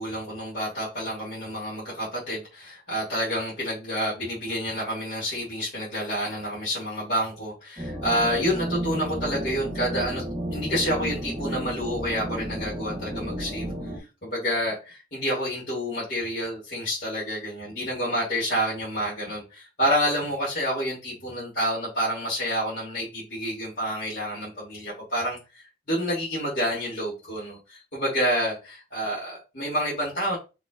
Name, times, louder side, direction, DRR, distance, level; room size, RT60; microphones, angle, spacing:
voice 1, 0.0-10.2 10.5-13.7 14.2-30.4, equal, 45° left, -9 dB, 2.6 m, -28 dB
sound 1, 7.8-14.0, equal, 20° right, 1.1 m, -32 dB
5.9 x 3.5 x 2.5 m, 0.29 s
head